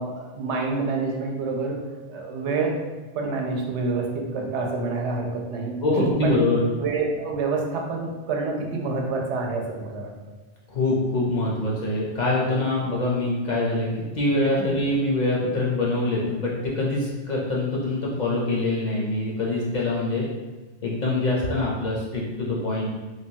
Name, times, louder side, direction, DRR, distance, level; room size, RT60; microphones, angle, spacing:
voice 1, 0.0-2.8 3.1-6.4 6.8-10.1 14.6-14.8, right 3 dB, 90° right, 1 dB, 0.9 m, -27 dB
voice 2, 5.8-6.6 10.7-13.9 14.1-20.2 20.8-22.9, left 2 dB, 55° left, -4 dB, 0.5 m, -24 dB
3.2 x 2.1 x 2.7 m, 1.2 s
omnidirectional pair, 1.1 m